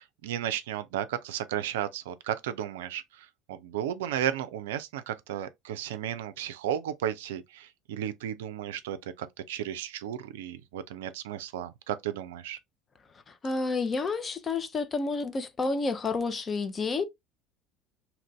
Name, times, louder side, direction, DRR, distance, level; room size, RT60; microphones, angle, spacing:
voice 1, 0.0-12.6, right 10 dB, 75° right, 0.4 m, -34 dB
voice 2, 13.3-17.0, left 3 dB, 30° left, 0.6 m, -30 dB
2.9 x 2.5 x 3.1 m
hypercardioid pair, 65°, 0 cm